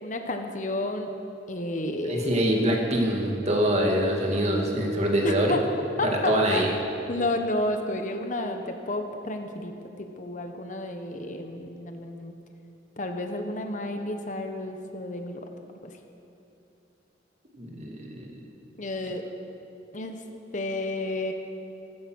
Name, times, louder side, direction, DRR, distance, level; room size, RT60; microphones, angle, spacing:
voice 1, 0.0-1.1 1.5-2.5 5.2-5.6 6.0-6.7 7.1-9.7 10.0-12.3 13.0-15.4 18.8-19.2 19.9-20.2 20.5-21.3, left 2 dB, 45° left, 5 dB, 1.2 m, -31 dB
voice 2, 2.0-5.6 6.0-6.7 17.6-18.4, right 1 dB, 35° right, 0 dB, 2.1 m, -25 dB
15.0 x 14.0 x 6.3 m, 2.8 s
head